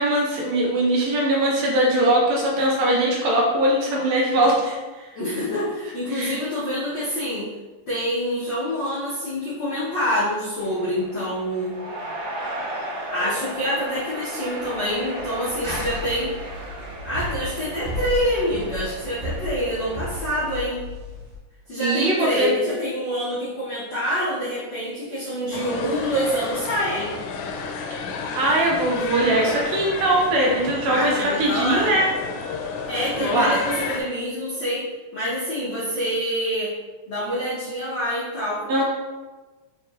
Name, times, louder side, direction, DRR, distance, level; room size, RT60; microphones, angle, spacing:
voice 1, 0.0-5.1 6.1-6.3 21.8-22.5 28.3-32.1 33.2-33.6 38.7-38.8, right 1 dB, 75° right, -3 dB, 1.7 m, -21 dB
voice 2, 5.1-7.5 7.9-11.7 13.1-16.3 17.0-20.9 21.7-27.2 30.9-31.9 32.9-34.8 35.1-36.7 37.1-38.8, equal, 70° left, -10 dB, 1.1 m, -26 dB
sound 1, 10.6-20.6, right 1 dB, 55° right, 1.4 m, -36 dB
sound 2, 15.5-21.4, left 1 dB, 40° right, 1.7 m, -33 dB
sound 3, 25.5-34.0, left 5 dB, 85° left, 2.1 m, -31 dB
4.5 x 4.5 x 2.4 m, 1.3 s
omnidirectional pair, 3.5 m